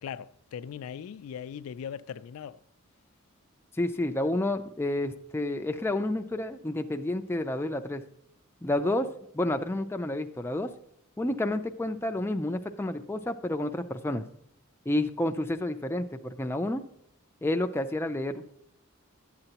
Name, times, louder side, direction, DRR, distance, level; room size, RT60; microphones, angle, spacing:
voice 1, 0.0-2.6, left 8 dB, 75° left, 0.3 m, -39 dB
voice 2, 3.8-8.0 8.6-9.1 9.3-10.7 11.2-14.2 14.9-16.8 17.4-18.4, left 1 dB, 10° left, 0.4 m, -30 dB
11.5 x 7.8 x 2.9 m
head